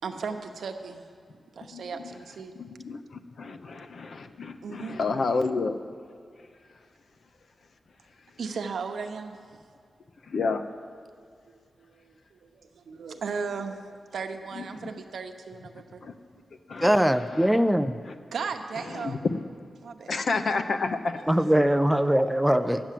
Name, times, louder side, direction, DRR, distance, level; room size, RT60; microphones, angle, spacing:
voice 1, 0.0-1.1 1.6-2.5 3.4-3.9 4.6-5.0 8.4-9.4 11.9-16.0 18.3-19.3 19.8-20.2 21.3-21.4 21.9-22.1, right 5 dB, 80° right, 5 dB, 0.9 m, -36 dB
voice 2, 1.7-2.2 2.6-5.8 10.2-10.6 14.5-14.9 16.0-16.1 16.7-17.5 18.1-18.2 18.9-19.4 20.1-21.2, left 4 dB, 55° left, 8 dB, 0.7 m, -30 dB
voice 3, 16.8-18.0 21.3-22.8, equal, ahead, 9 dB, 0.4 m, -21 dB
12.0 x 8.8 x 7.5 m, 2.2 s
wide cardioid pair, 175°, 0 cm